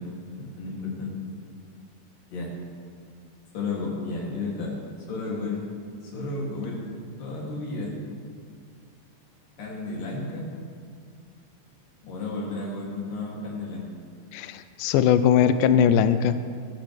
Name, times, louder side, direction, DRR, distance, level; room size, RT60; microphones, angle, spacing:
voice 1, 0.6-1.1 2.3-2.5 3.5-4.7 5.1-5.6 6.1-6.8 7.2-8.0 9.6-10.5 12.0-13.8, left 3 dB, 65° left, -3 dB, 4.3 m, -32 dB
voice 2, 14.3-16.4, left 8 dB, 85° left, 11 dB, 1.9 m, -20 dB
21.0 x 12.5 x 3.4 m, 2.2 s
omnidirectional pair, 4.3 m